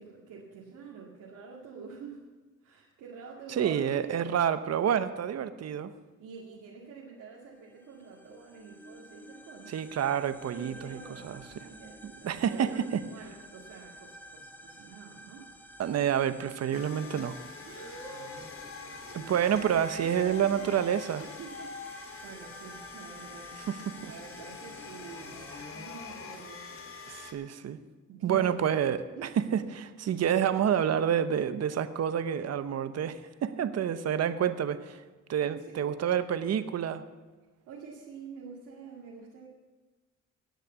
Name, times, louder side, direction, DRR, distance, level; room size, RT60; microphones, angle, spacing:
voice 1, 0.0-2.2 2.6-4.3 6.2-9.8 10.5-15.5 17.6-18.5 18.8-20.8 21.2-23.6 23.8-27.3 28.1-28.7 29.1-29.3 35.6-35.9 37.7-39.5, right 5 dB, 80° right, -3 dB, 2.2 m, -47 dB
voice 2, 3.5-5.9 9.7-11.0 11.2-11.4 12.0-13.0 15.8-17.4 19.1-21.2 23.7-24.1 27.1-27.8 28.2-29.1 29.4-35.0 35.3-37.0, right 9 dB, 55° right, 12 dB, 1.0 m, -28 dB
sound 1, 7.6-25.6, equal, 5° left, 1.3 m, -52 dB
sound 2, 16.7-27.3, left 4 dB, 45° left, 2.4 m, -44 dB
18.0 x 6.6 x 8.1 m, 1.3 s
cardioid pair, 90°, 30 cm